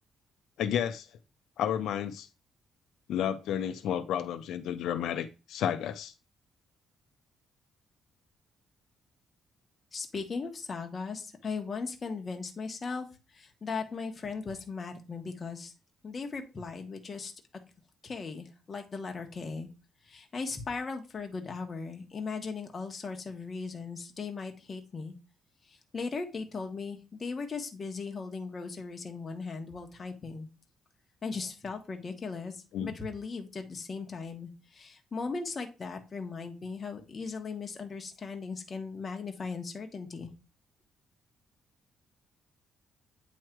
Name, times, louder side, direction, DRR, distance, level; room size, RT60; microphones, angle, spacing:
voice 1, 0.6-1.1 1.6-2.3 3.1-6.1 32.7-32.9, left 9 dB, 80° left, 8 dB, 0.5 m, -31 dB
voice 2, 9.9-13.1 13.3-15.7 16.0-17.3 18.0-19.7 20.0-25.1 25.7-30.5 31.2-40.3, left 4 dB, 30° left, 4 dB, 1.1 m, -38 dB
8.8 x 3.1 x 4.5 m, 0.31 s
cardioid pair, 150°, 0 cm